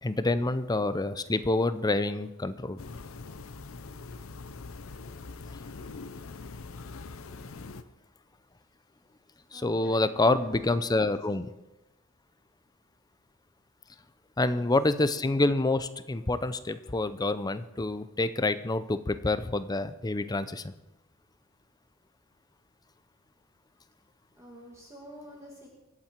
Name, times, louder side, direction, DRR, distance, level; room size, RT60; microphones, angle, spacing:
voice 1, 0.0-2.8 9.5-11.5 14.4-20.7, left 2 dB, 20° left, 13 dB, 0.6 m, -27 dB
sound 1, 2.8-7.8, left 3 dB, 75° left, 0.7 m, -43 dB
voice 2, 6.8-7.1 9.5-11.2 14.4-14.7 24.4-25.7, equal, 15° right, -2 dB, 2.2 m, -50 dB
24.0 x 8.8 x 4.5 m, 1.0 s
head